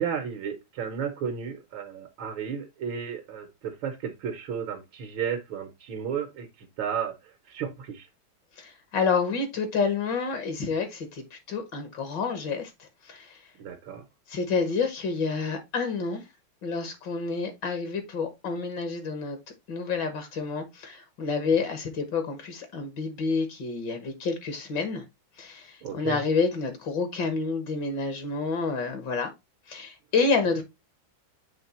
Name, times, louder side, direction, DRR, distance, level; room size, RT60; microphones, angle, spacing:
voice 1, 0.0-7.2 7.5-8.1 13.6-14.0 25.8-26.2, right 7 dB, 80° right, 1.8 m, -33 dB
voice 2, 8.6-13.4 14.3-16.2 16.6-19.4 19.7-25.0 25.4-29.3 29.7-30.6, left 4 dB, 65° left, 1.8 m, -29 dB
7.5 x 3.3 x 4.2 m
omnidirectional pair, 2.1 m